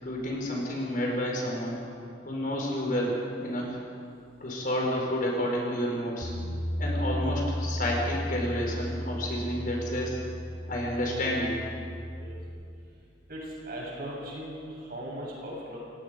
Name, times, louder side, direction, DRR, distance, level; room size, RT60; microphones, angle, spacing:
voice 1, 0.0-1.8 2.2-3.8 4.4-6.3 6.8-10.2 10.7-11.6, equal, 50° left, -1 dB, 5.0 m, -30 dB
Bass guitar, 6.2-12.5, equal, 80° left, 2.8 m, -34 dB
voice 2, 13.3-15.8, right 1 dB, 55° right, -4 dB, 7.3 m, -38 dB
28.5 x 18.0 x 5.2 m, 2.4 s
head